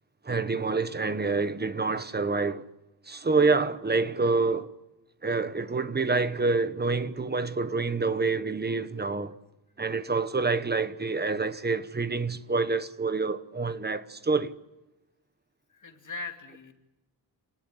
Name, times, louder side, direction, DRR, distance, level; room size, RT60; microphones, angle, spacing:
voice 1, 0.2-2.7 3.0-4.7 5.2-9.3 9.8-14.5, right 3 dB, 20° right, 1.0 m, -27 dB
voice 2, 15.7-16.7, left 3 dB, 45° left, 2.6 m, -39 dB
28.0 x 19.5 x 9.9 m
wide cardioid pair, 180°, 44 cm